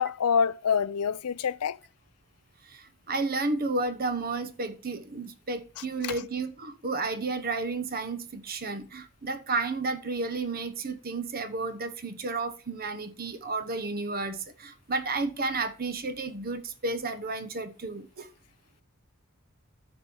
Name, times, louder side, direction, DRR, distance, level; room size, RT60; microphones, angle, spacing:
voice 1, 0.0-1.8 5.8-6.1, left 6 dB, 85° left, 0.5 m, -27 dB
voice 2, 2.7-18.3, right 3 dB, 45° right, 1.1 m, -32 dB
10.0 x 6.3 x 5.4 m
head